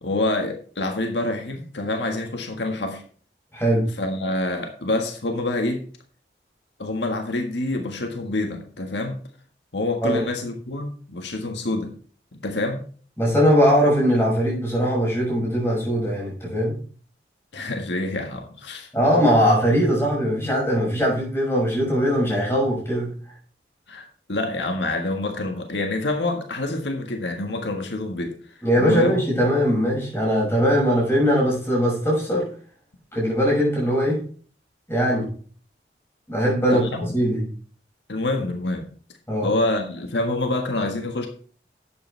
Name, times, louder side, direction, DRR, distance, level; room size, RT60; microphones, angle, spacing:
voice 1, 0.0-3.0 4.0-5.8 6.8-9.2 9.7-11.9 12.4-12.8 17.5-18.9 23.9-29.2 36.7-37.1 38.1-38.9 39.4-41.3, left 2 dB, 85° left, 4 dB, 1.6 m, -27 dB
voice 2, 3.5-3.9 10.0-10.2 13.2-16.8 18.9-23.1 28.6-32.5 33.1-34.2 34.9-35.3 36.3-36.9 37.1-37.4 39.3-39.5, equal, 15° left, -4 dB, 6.1 m, -20 dB
11.5 x 8.8 x 3.4 m, 0.43 s
head